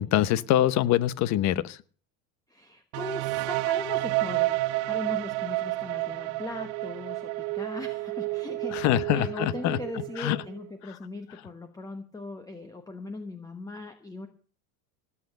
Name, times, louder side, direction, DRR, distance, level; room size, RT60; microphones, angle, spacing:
voice 1, 0.0-1.8 8.7-9.8 10.2-10.4, left 13 dB, 45° left, 17 dB, 1.0 m, -24 dB
voice 2, 2.5-14.3, left 2 dB, 10° left, 8 dB, 1.2 m, -39 dB
sound 1, 2.9-10.7, right 19 dB, 60° right, 0.7 m, -30 dB
18.5 x 8.4 x 6.6 m, 0.43 s
supercardioid pair, 130°, 39 cm